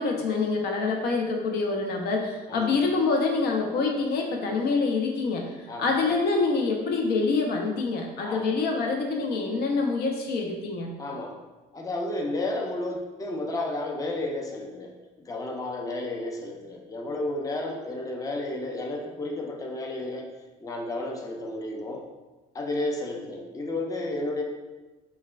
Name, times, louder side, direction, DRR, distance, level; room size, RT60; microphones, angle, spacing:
voice 1, 0.0-10.9, left 4 dB, 70° left, 1 dB, 0.6 m, -26 dB
voice 2, 8.2-8.5 11.0-11.3 11.7-20.3 20.6-22.0 22.5-24.4, left 2 dB, 20° left, 1 dB, 0.5 m, -32 dB
5.4 x 2.2 x 2.4 m, 1.2 s
cardioid pair, 110°, 17 cm